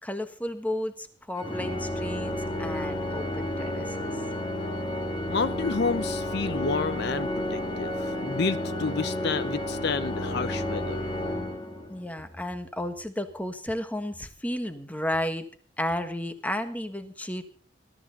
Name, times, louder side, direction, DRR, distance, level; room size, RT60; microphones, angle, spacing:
voice 1, 0.0-4.2 11.9-15.5 15.8-17.4, left 1 dB, 10° left, 8 dB, 1.5 m, -33 dB
Organ, 1.4-12.1, left 1 dB, 25° left, 2.2 m, -31 dB
voice 2, 5.3-11.1, left 4 dB, 60° left, 14 dB, 0.7 m, -30 dB
20.5 x 13.0 x 4.1 m, 0.44 s
head